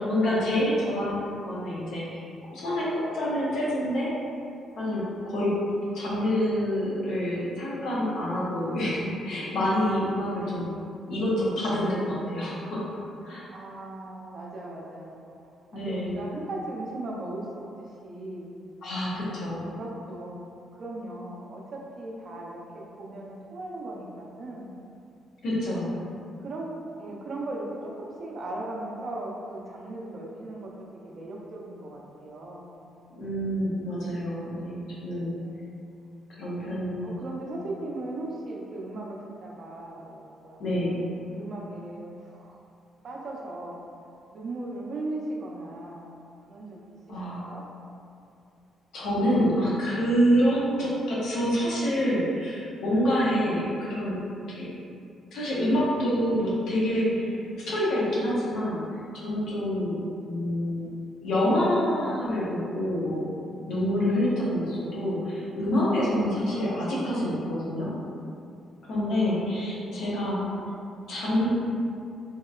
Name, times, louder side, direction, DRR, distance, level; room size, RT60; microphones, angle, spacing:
voice 1, 0.1-2.3 2.5-4.1 4.8-5.5 5.9-10.7 11.1-12.8 13.2-13.4 15.7-16.1 18.8-19.7 25.4-25.9 33.1-35.3 36.4-37.1 40.6-41.0 47.1-47.5 48.9-54.2 54.5-54.7 55.3-58.8 59.1-60.0 60.2-60.9 61.2-63.3 63.7-67.9 68.9-70.4 71.1-71.5, equal, 80° left, -7 dB, 0.8 m, -27 dB
voice 2, 0.8-1.1 5.3-5.6 10.3-10.7 13.5-15.3 15.7-18.5 19.1-24.7 26.4-26.7 27.0-32.7 35.4-35.7 37.0-40.6 41.3-42.6 43.0-43.9 44.3-47.6 50.7-51.0 57.2-57.5 64.3-64.9 66.4-67.0 69.1-70.8, right 2 dB, 55° right, -2 dB, 0.5 m, -38 dB
2.9 x 2.7 x 2.4 m, 2.5 s
cardioid pair, 90°, 0 cm